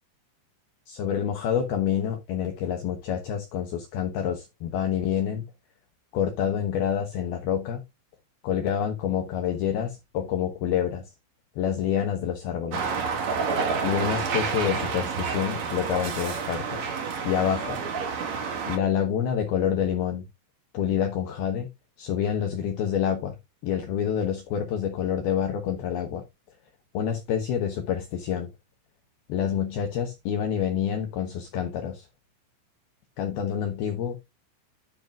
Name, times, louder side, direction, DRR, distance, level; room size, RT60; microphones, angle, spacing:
voice 1, 0.9-5.4 6.1-7.8 8.4-11.0 11.6-12.9 13.8-16.8 17.2-17.8 18.7-20.2 20.7-21.7 22.0-23.4 23.6-26.2 26.9-28.5 29.3-32.1 33.2-34.2, left 9 dB, 80° left, 2.2 m, -27 dB
sound 1, 12.7-18.8, right 5 dB, 80° right, 1.5 m, -29 dB
10.5 x 7.9 x 2.4 m
omnidirectional pair, 6.0 m